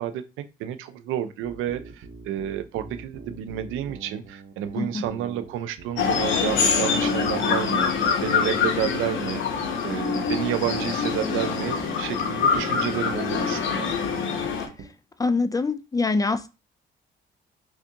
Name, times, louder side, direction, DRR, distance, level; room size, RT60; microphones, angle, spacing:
voice 1, 0.0-13.9, right 10 dB, 90° right, 0.5 m, -30 dB
sound 1, 1.4-15.0, right 5 dB, 65° right, 0.8 m, -44 dB
sound 2, 6.0-14.7, left 5 dB, 80° left, 0.8 m, -25 dB
voice 2, 15.2-16.5, left 3 dB, 20° left, 0.3 m, -24 dB
3.5 x 3.4 x 2.8 m
cardioid pair, 90°, 20 cm